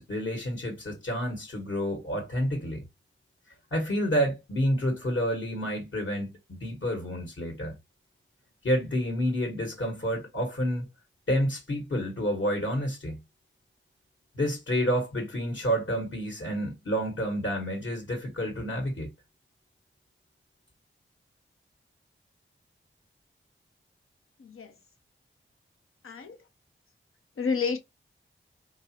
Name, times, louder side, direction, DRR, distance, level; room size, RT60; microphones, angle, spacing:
voice 1, 0.0-2.8 3.7-7.7 8.6-10.9 11.3-13.2 14.3-19.1, equal, 65° left, 1.5 m, -29 dB
voice 2, 24.4-24.7 26.0-26.4 27.4-27.8, left 5 dB, 85° left, 0.9 m, -29 dB
3.9 x 2.7 x 2.9 m
cardioid pair, 55°, 21 cm